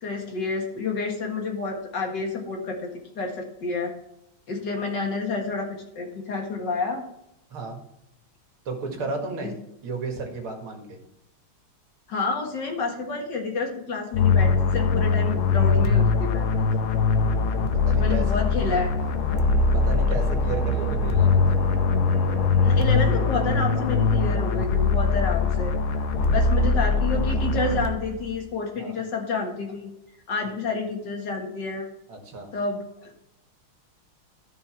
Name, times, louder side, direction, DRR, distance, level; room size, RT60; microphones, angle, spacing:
voice 1, 0.0-2.9 3.2-3.9 4.5-7.0 9.4-9.5 12.1-16.7 17.8-18.9 22.6-25.8 26.3-29.9 30.3-31.9 32.5-33.1, left 4 dB, 55° left, 2 dB, 2.1 m, -29 dB
voice 2, 7.5-7.8 8.7-9.5 9.8-11.0 17.7-18.2 19.7-21.4 28.8-29.0 30.5-30.6 32.1-32.5, right 4 dB, 80° right, 2 dB, 2.7 m, -33 dB
sound 1, 14.1-28.3, left 4 dB, 75° left, 1.7 m, -22 dB
sound 2, 16.3-24.8, right 1 dB, 40° left, 2.0 m, -36 dB
13.0 x 5.6 x 4.4 m, 0.83 s
omnidirectional pair, 2.3 m